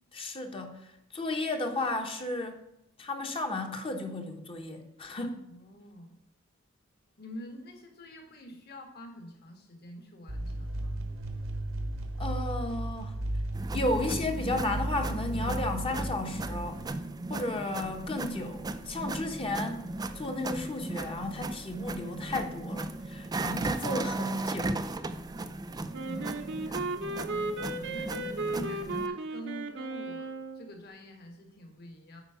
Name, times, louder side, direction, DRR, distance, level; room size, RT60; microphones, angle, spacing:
voice 1, 0.1-2.6 3.0-5.4 12.2-13.2 13.7-16.7 17.3-19.8 20.1-24.8, left 2 dB, 25° left, 4 dB, 0.9 m, -33 dB
voice 2, 5.5-6.1 7.2-11.1 26.1-27.0 27.7-32.2, equal, 50° left, 3 dB, 1.6 m, -47 dB
sound 1, 10.3-16.9, right 1 dB, 80° right, 1.3 m, -35 dB
sound 2, 13.5-29.1, right 2 dB, 20° right, 0.4 m, -36 dB
Wind instrument woodwind instrument, 25.9-30.7, right 2 dB, 60° right, 0.7 m, -35 dB
8.8 x 4.5 x 5.6 m, 0.80 s
head